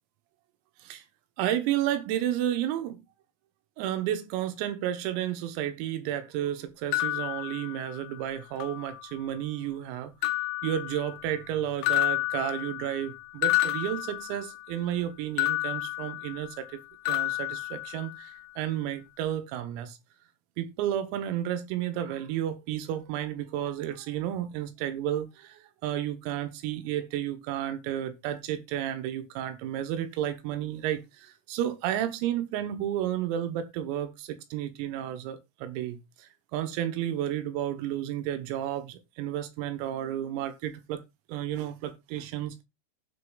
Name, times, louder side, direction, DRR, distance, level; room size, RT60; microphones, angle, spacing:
voice 1, 1.4-3.0 3.8-10.1 10.6-20.0 20.6-41.0 41.3-42.6, right 11 dB, 85° right, 3.7 m, -32 dB
sound 1, 6.9-8.2 8.6-9.4 10.2-11.5 11.8-14.8 15.4-16.8 17.1-18.4, left 19 dB, 85° left, 3.5 m, -31 dB
16.5 x 6.5 x 2.3 m
omnidirectional pair, 5.9 m